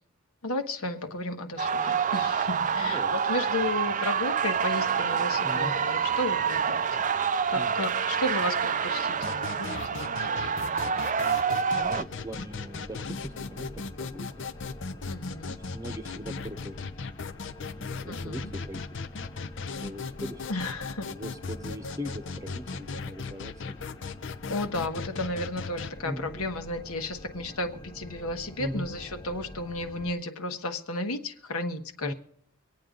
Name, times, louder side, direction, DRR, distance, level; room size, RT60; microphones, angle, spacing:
voice 1, 0.4-6.8 7.5-11.0 15.1-15.5 18.1-18.5 20.5-21.1 24.5-32.1, left 2 dB, 80° left, 6 dB, 1.4 m, -33 dB
sound 1, 1.6-12.0, right 7 dB, 35° right, 0.5 m, -27 dB
voice 2, 2.8-3.1 5.4-5.7 7.5-7.8 11.7-14.4 15.5-16.8 17.6-18.8 19.6-23.9 26.0-26.3 28.6-28.9 32.0-32.1, equal, 15° right, 9 dB, 0.9 m, -40 dB
sound 2, 9.2-25.9, left 4 dB, 60° left, 0.7 m, -38 dB
sound 3, 11.8-30.1, left 1 dB, 20° left, 0.7 m, -47 dB
24.5 x 8.8 x 3.9 m, 0.73 s
head